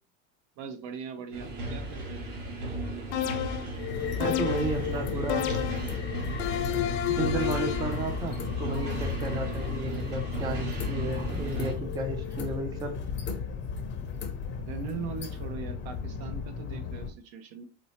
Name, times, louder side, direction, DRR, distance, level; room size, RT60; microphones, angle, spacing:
voice 1, 0.6-2.4 7.1-7.3 9.3-9.7 14.6-17.6, right 6 dB, 60° right, 8 dB, 0.7 m, -40 dB
sound 1, 1.3-11.7, right 2 dB, 85° right, 1.7 m, -36 dB
sound 2, 3.1-3.8 4.2-4.8 5.3-5.9 6.4-8.0, left 11 dB, 85° left, 0.6 m, -30 dB
sound 3, 3.7-17.1, left 6 dB, 30° left, 0.6 m, -34 dB
voice 2, 4.2-5.6 7.1-13.0, right 2 dB, 10° right, 4 dB, 0.4 m, -33 dB
4.3 x 2.1 x 2.8 m, 0.37 s
supercardioid pair, 135°, 36 cm